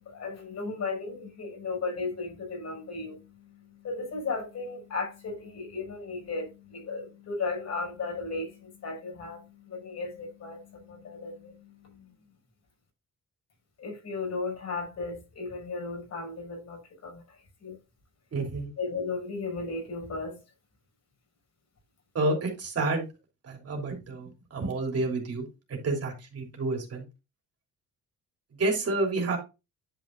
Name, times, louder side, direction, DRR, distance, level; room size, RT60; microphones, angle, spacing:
voice 1, 0.0-11.8 13.8-17.2 17.6-17.8 18.8-20.4, left 3 dB, 60° left, 5.1 m, -35 dB
voice 2, 18.3-18.7 22.1-23.1 23.4-27.0 28.6-29.4, right 2 dB, 50° right, 3.2 m, -29 dB
10.5 x 5.7 x 2.5 m
cardioid pair, 90°, 30 cm